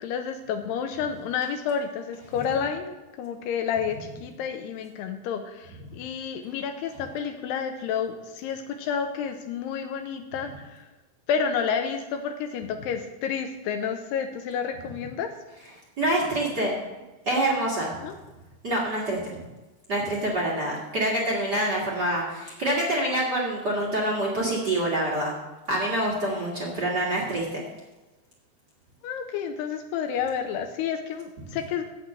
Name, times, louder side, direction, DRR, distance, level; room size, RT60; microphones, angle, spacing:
voice 1, 0.0-10.9 11.3-15.3 18.0-18.2 29.0-31.8, left 7 dB, 80° left, 6 dB, 2.7 m, -30 dB
voice 2, 16.0-16.8 17.2-17.9 18.6-19.2 19.9-25.3 25.7-27.6, right 1 dB, 40° right, -3 dB, 1.6 m, -26 dB
8.2 x 8.1 x 7.6 m, 1.1 s
omnidirectional pair, 4.8 m